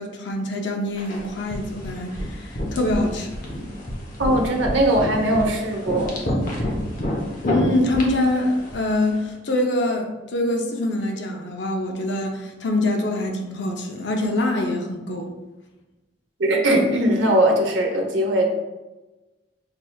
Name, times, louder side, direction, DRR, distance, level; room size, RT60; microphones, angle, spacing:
voice 1, 0.0-3.4 7.4-15.3, left 1 dB, 75° left, 2 dB, 0.6 m, -24 dB
sound 1, 1.0-9.2, left 1 dB, 45° left, 0.9 m, -29 dB
voice 2, 4.2-6.2 6.6-6.7 16.4-18.5, right 1 dB, 85° right, 1 dB, 0.8 m, -20 dB
5.9 x 3.2 x 2.3 m, 1.1 s
head